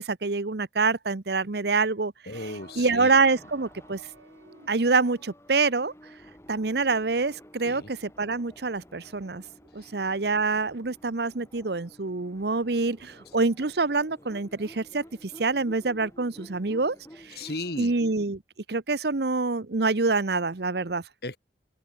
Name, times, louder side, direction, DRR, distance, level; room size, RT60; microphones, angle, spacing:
voice 1, 0.0-2.1 2.8-4.0 4.7-5.9 6.5-9.4 9.7-17.0 17.2-17.4 17.8-18.4 18.7-21.0, right 3 dB, 60° right, 0.9 m, -26 dB
voice 2, 2.3-3.2 7.6-7.9 9.8-9.9 17.3-17.9 21.2-21.4, left 2 dB, 55° left, 3.0 m, -36 dB
sound 1, 2.3-18.2, equal, 15° left, 3.0 m, -52 dB
sound 2, 2.3-5.2, right 3 dB, 85° right, 3.1 m, -54 dB
open air
head